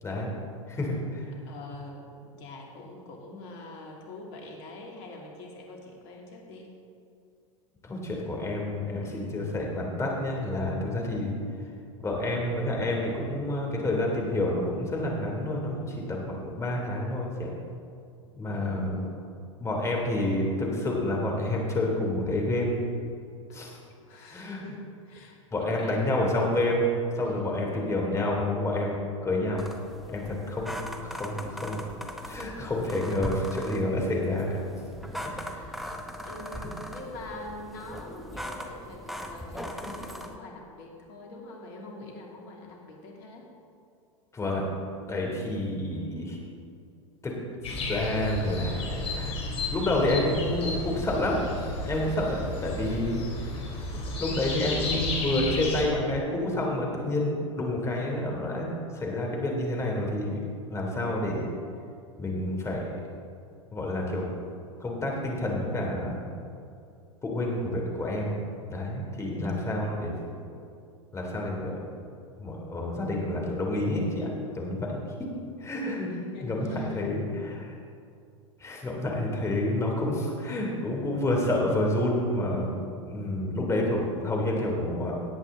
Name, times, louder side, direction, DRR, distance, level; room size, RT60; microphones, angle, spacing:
voice 1, 0.7-1.2 7.8-11.3 12.0-17.5 18.4-19.0 19.6-22.8 23.5-23.8 24.3-24.6 25.5-29.6 30.1-30.8 31.0-31.8 32.2-34.6 35.2-35.3 44.3-44.6 45.1-46.4 47.2-47.3 47.7-49.5 49.7-51.4 51.8-53.2 53.9-60.4 60.7-61.5 62.2-62.9 63.7-64.3 64.8-66.2 67.2-68.3 68.7-70.1 71.1-71.8 72.4-75.0 75.6-76.1 76.4-77.7 78.6-85.1, left 1 dB, 15° left, -1 dB, 3.0 m, -29 dB
voice 2, 1.5-6.7 9.0-9.6 18.5-19.0 23.5-26.1 27.2-27.6 35.0-43.5 76.0-77.0, left 2 dB, 55° left, -1 dB, 2.8 m, -45 dB
sound 1, 29.6-40.4, equal, ahead, 1.0 m, -39 dB
sound 2, 47.6-55.8, left 2 dB, 35° left, 3.3 m, -33 dB
18.5 x 8.1 x 3.8 m, 2.4 s
hypercardioid pair, 95°, 17 cm